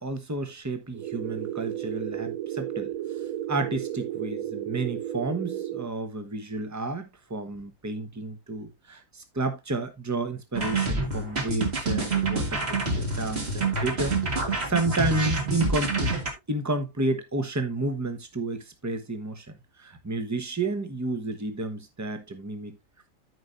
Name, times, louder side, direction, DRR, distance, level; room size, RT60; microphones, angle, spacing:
voice 1, 0.0-2.9 3.5-14.2 14.6-16.1 16.5-22.8, right 2 dB, 15° right, 1.0 m, -31 dB
sound 1, 0.9-5.9, right 11 dB, 75° right, 1.1 m, -33 dB
sound 2, 10.5-16.3, right 3 dB, 45° right, 2.1 m, -27 dB
13.5 x 5.0 x 2.6 m
omnidirectional pair, 1.5 m